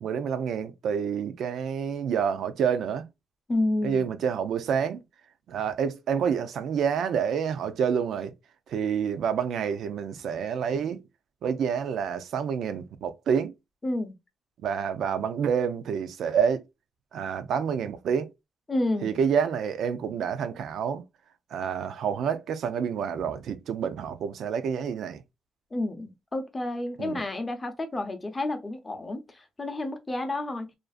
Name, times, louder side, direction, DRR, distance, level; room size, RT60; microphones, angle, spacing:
voice 1, 0.0-3.1 3.8-5.0 5.5-8.3 8.7-11.0 11.4-13.5 14.6-16.6 17.1-18.3 19.0-21.0 21.5-25.2 27.0-27.2, right 7 dB, 70° right, 0.4 m, -28 dB
voice 2, 3.5-4.1 13.8-14.2 18.7-19.1 25.7-30.7, left 2 dB, 20° left, 0.6 m, -30 dB
2.5 x 2.4 x 2.3 m
cardioid pair, 115°, 0 cm